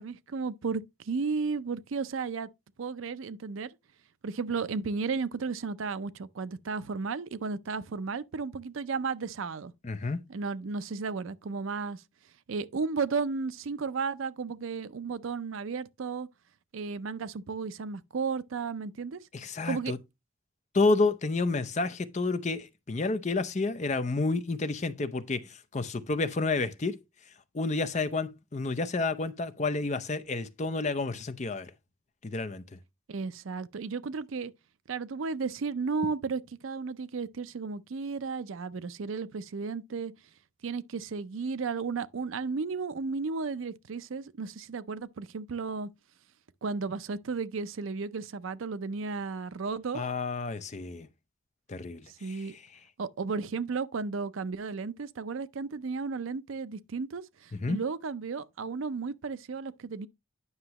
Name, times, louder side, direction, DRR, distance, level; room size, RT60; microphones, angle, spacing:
voice 1, 0.0-2.5 2.8-3.7 4.2-9.7 10.3-12.0 12.5-16.3 16.7-19.2 19.6-20.0 33.1-34.5 34.9-40.1 40.6-45.9 46.6-50.0 52.2-52.6 53.0-60.1, right 4 dB, 75° right, 0.5 m, -34 dB
voice 2, 9.8-10.2 19.3-20.0 20.7-27.0 27.5-31.7 32.2-32.8 49.9-51.1 51.7-52.6 57.5-57.8, left 3 dB, 35° left, 0.6 m, -30 dB
9.6 x 5.8 x 2.9 m
head